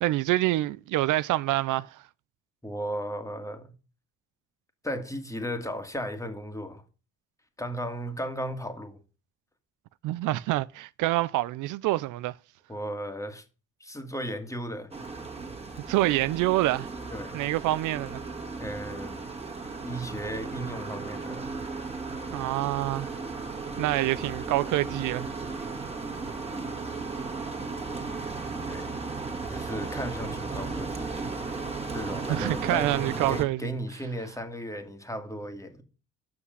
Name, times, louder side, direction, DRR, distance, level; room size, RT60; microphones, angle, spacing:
voice 1, 0.0-2.0 10.0-12.4 15.9-16.9 17.3-18.2 22.3-23.2 23.8-25.3 32.3-33.7, right 17 dB, 85° right, 0.5 m, -26 dB
voice 2, 2.6-3.8 4.8-6.8 7.6-9.0 12.7-13.4 13.8-14.9 17.1-17.4 18.6-19.2 19.8-21.5 28.7-28.8 29.5-31.1 31.9-32.9 33.3-35.8, equal, 10° left, 2.0 m, -35 dB
Truck passed high speed in the rain卡车过高速桥下雨, 14.9-33.4, right 4 dB, 20° right, 2.0 m, -35 dB
7.8 x 5.9 x 7.9 m
cardioid pair, 90°, 30 cm